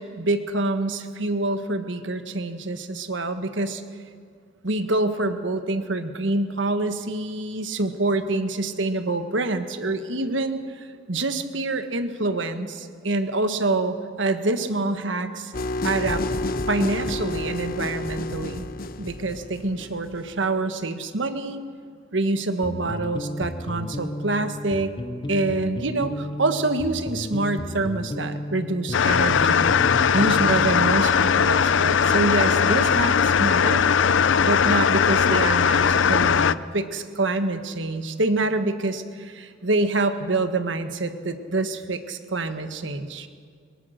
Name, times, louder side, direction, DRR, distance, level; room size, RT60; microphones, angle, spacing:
voice 1, 0.0-3.8 4.6-15.5 15.8-16.2 16.7-18.7 19.0-21.6 22.1-24.9 25.3-29.8 30.1-33.8 34.4-43.3, right 2 dB, 65° right, 9 dB, 1.5 m, -26 dB
sound 1, 15.5-20.3, left 2 dB, 50° left, 0.9 m, -30 dB
sound 2, 22.6-31.1, left 1 dB, 25° left, 0.8 m, -33 dB
sound 3, 28.9-36.5, left 7 dB, 65° left, 0.5 m, -19 dB
23.0 x 22.5 x 6.5 m, 2.1 s
head